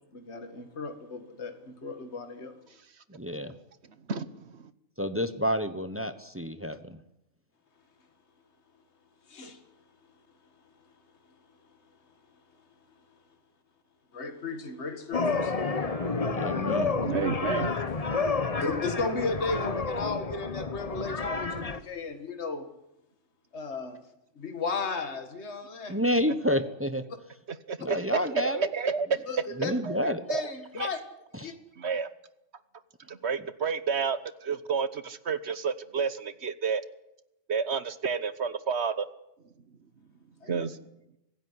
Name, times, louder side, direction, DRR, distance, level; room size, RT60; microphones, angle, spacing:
voice 1, 0.1-2.5 9.3-9.6 14.1-15.7 18.6-22.7 23.5-24.0 24.4-26.0 29.3-29.7 30.3-31.0 31.4-31.5 40.4-40.6, left 3 dB, 60° left, 7 dB, 2.1 m, -35 dB
voice 2, 3.1-3.6 5.0-7.0 16.1-17.0 25.9-27.0 27.8-28.7 29.6-30.2 31.4-31.5, equal, 10° right, 11 dB, 1.1 m, -29 dB
voice 3, 4.1-4.7 17.0-17.7 27.7-29.2 29.6-30.4 30.8-30.9 31.8-32.1 33.1-36.8 37.5-39.1 40.5-40.8, right 5 dB, 60° right, 14 dB, 1.3 m, -30 dB
sound 1, 15.1-21.8, left 4 dB, 30° left, 1.1 m, -30 dB
Livestock farm animals working animals, 15.2-16.3 17.6-19.1, right 2 dB, 80° right, 7.8 m, -50 dB
25.5 x 16.0 x 9.8 m, 0.88 s
omnidirectional pair, 1.3 m